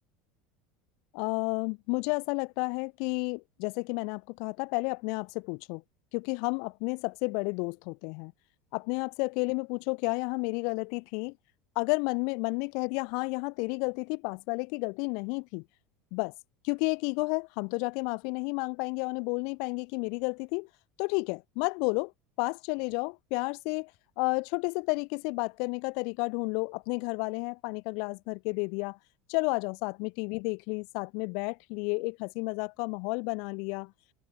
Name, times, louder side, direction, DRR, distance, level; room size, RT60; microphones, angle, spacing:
voice 1, 1.1-5.8 6.1-8.3 8.7-11.3 11.8-15.6 16.1-16.3 16.6-20.7 21.0-22.1 22.4-23.9 24.2-29.0 29.3-33.9, left 35 dB, 65° left, 0.7 m, -31 dB
supercardioid pair, 110°, 0 cm